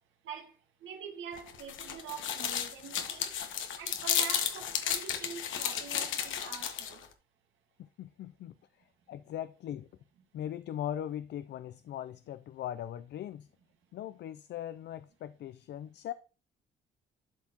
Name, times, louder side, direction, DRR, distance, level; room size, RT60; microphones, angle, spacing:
voice 1, 0.2-3.4 3.8-7.1, right 7 dB, 80° right, 1.6 m, -45 dB
sound 1, 1.4-7.0, left 8 dB, 75° left, 1.1 m, -33 dB
voice 2, 8.0-8.5 9.1-9.9 10.3-13.5 13.9-16.1, left 11 dB, 60° left, 0.4 m, -39 dB
11.5 x 4.3 x 2.9 m
cardioid pair, 90°, 20 cm